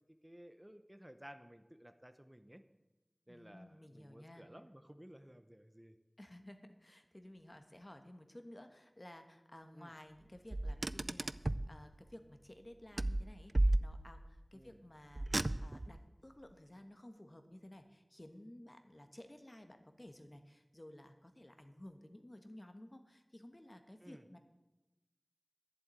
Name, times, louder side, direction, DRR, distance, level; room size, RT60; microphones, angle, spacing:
voice 1, 0.0-2.6 3.3-6.0 9.7-9.9 14.5-14.8 24.0-24.3, equal, 15° right, 9 dB, 0.8 m, -56 dB
voice 2, 3.3-4.4 6.2-24.4, left 1 dB, 40° left, 7 dB, 1.3 m, -55 dB
Car, 10.5-11.7 13.0-14.3 15.1-16.0, right 1 dB, 65° right, 0.4 m, -34 dB
11.5 x 7.5 x 8.9 m, 1.1 s
wide cardioid pair, 40°, 0 cm